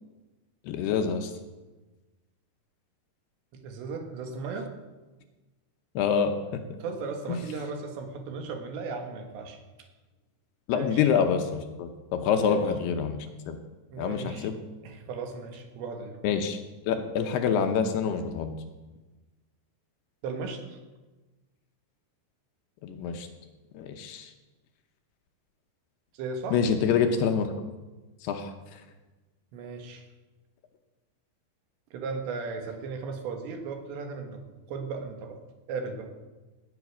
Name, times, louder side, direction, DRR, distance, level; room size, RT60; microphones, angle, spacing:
voice 1, 0.6-1.3 6.0-6.6 10.7-13.2 13.5-13.6 14.0-14.6 16.2-16.6 16.9-18.5 22.8-23.3 23.7-24.3 26.5-27.5 28.2-28.8, left 7 dB, 75° left, 6 dB, 2.7 m, -26 dB
voice 2, 3.6-4.7 6.8-9.6 10.7-11.1 12.5-12.6 13.9-14.5 14.8-16.2 20.2-20.6 26.1-26.6 29.5-30.1 31.9-34.4 34.7-35.4 35.7-36.1, right 4 dB, 80° right, 4 dB, 3.8 m, -36 dB
18.0 x 9.2 x 6.1 m, 1.2 s
omnidirectional pair, 5.1 m